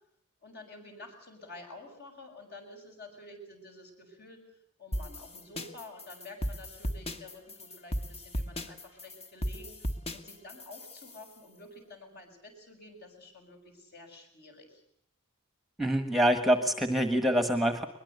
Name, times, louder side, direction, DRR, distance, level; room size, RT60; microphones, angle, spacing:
voice 1, 0.4-14.8, left 2 dB, 50° left, 3 dB, 7.0 m, -50 dB
sound 1, 4.9-11.3, equal, 30° left, 1.5 m, -36 dB
voice 2, 15.8-17.8, equal, ahead, 9 dB, 1.4 m, -25 dB
22.0 x 22.0 x 8.1 m, 0.71 s
head